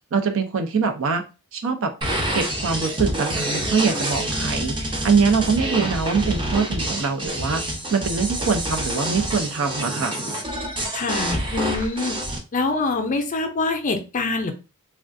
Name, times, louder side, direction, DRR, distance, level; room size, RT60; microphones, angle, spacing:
voice 1, 0.1-1.2 1.5-1.9 2.3-7.6 7.9-10.1, right 5 dB, 65° right, 7 dB, 0.5 m, -23 dB
sound 1, 2.0-12.4, right 1 dB, 20° right, 0.6 m, -27 dB
voice 2, 10.9-12.2 12.5-14.5, left 3 dB, 35° left, 4 dB, 0.5 m, -24 dB
3.4 x 2.3 x 2.5 m, 0.31 s
head